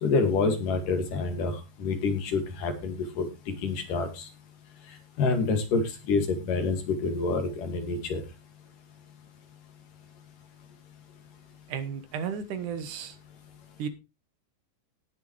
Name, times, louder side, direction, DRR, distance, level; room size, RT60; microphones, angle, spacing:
voice 1, 0.0-3.3 3.6-4.2 5.2-5.8 6.1-8.2, left 4 dB, 75° left, 6 dB, 3.8 m, -27 dB
voice 2, 11.7-13.2 13.8-13.9, right 7 dB, 70° right, 11 dB, 2.6 m, -33 dB
18.5 x 7.1 x 3.2 m, 0.27 s
omnidirectional pair, 3.8 m